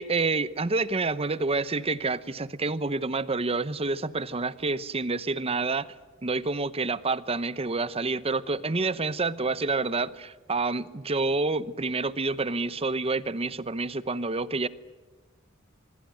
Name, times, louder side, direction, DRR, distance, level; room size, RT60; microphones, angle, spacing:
voice 1, 0.0-5.9 6.2-14.7, right 3 dB, 30° right, 0.8 m, -28 dB
25.0 x 21.0 x 9.1 m
head